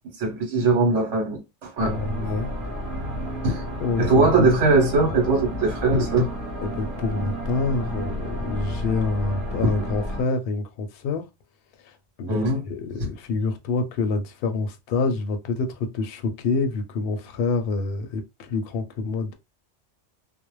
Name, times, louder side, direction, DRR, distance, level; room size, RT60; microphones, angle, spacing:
voice 1, 0.2-2.3 3.4-3.6 4.0-6.3 12.3-12.6 13.0-13.1, right 3 dB, 80° right, 1.2 m, -21 dB
voice 2, 1.8-2.5 3.8-4.6 6.6-11.3 11.9-12.0 12.2-19.3, left 3 dB, 60° left, 0.7 m, -27 dB
sound 1, 1.8-10.2, equal, 25° right, 1.2 m, -31 dB
2.4 x 2.0 x 3.0 m
omnidirectional pair, 1.2 m